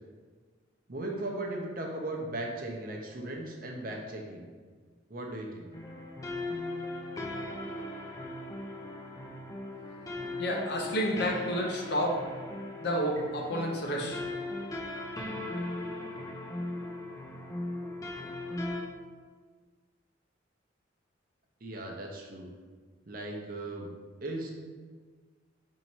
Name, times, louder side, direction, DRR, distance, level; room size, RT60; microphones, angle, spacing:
voice 1, 0.9-4.5 5.1-5.7 21.6-22.5 23.1-23.9 24.2-24.5, right 2 dB, 45° right, 0 dB, 0.6 m, -37 dB
sound 1, 5.7-18.8, left 2 dB, 15° left, 0.4 m, -38 dB
voice 2, 10.4-12.1 12.8-14.2, equal, 55° left, 0 dB, 0.7 m, -30 dB
4.3 x 2.7 x 4.4 m, 1.5 s
head